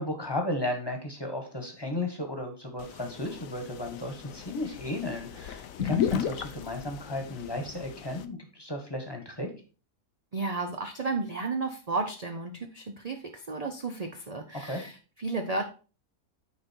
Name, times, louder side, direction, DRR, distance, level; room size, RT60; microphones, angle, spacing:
voice 1, 0.0-9.5 14.6-14.8, left 1 dB, 15° left, 4 dB, 1.4 m, -34 dB
sound 1, 2.8-8.2, left 9 dB, 70° left, 1.0 m, -35 dB
voice 2, 10.3-15.7, right 3 dB, 40° right, 4 dB, 0.6 m, -33 dB
9.5 x 4.0 x 4.5 m, 0.36 s
omnidirectional pair, 1.6 m